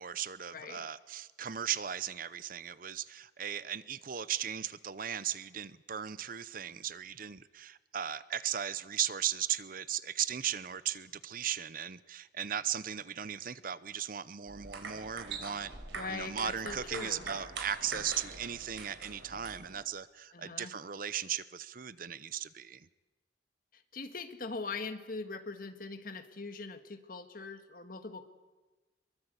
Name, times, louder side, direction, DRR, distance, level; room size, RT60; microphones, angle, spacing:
voice 1, 0.0-15.7 16.1-22.9, right 9 dB, 50° right, 16 dB, 0.7 m, -37 dB
voice 2, 0.5-0.8 16.0-17.2 20.3-20.7 23.7-28.2, left 3 dB, 50° left, 8 dB, 1.7 m, -41 dB
sound 1, 14.5-19.8, right 4 dB, 80° right, 4.3 m, -44 dB
23.0 x 23.0 x 8.2 m, 1.2 s
head